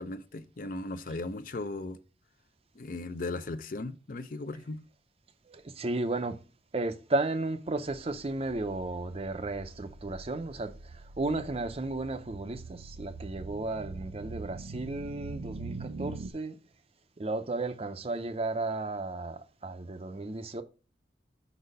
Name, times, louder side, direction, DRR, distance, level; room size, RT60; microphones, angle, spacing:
voice 1, 0.0-2.0 2.8-4.8, left 2 dB, 50° left, 0.5 m, -37 dB
voice 2, 5.5-6.4 6.7-16.6 17.2-20.6, right 2 dB, 35° right, 0.5 m, -34 dB
sound 1, 8.0-16.3, right 3 dB, 85° right, 0.5 m, -43 dB
5.6 x 4.1 x 5.1 m
head